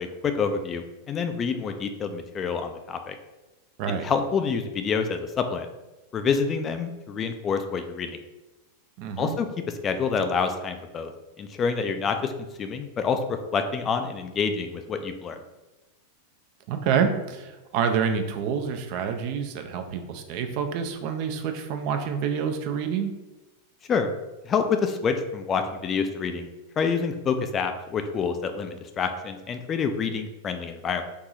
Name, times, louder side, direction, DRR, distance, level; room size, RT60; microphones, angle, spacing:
voice 1, 0.0-3.2 4.0-5.7 6.1-8.2 9.2-9.5 9.8-11.1 11.4-12.3 12.6-15.4 23.9-24.1 24.4-26.5 26.8-31.0, left 5 dB, 25° left, 7 dB, 0.3 m, -27 dB
voice 2, 9.0-9.4 16.7-23.1, right 7 dB, 45° right, 6 dB, 0.4 m, -27 dB
4.7 x 2.6 x 2.5 m, 1.1 s
figure-of-eight pair, 90°, 0 cm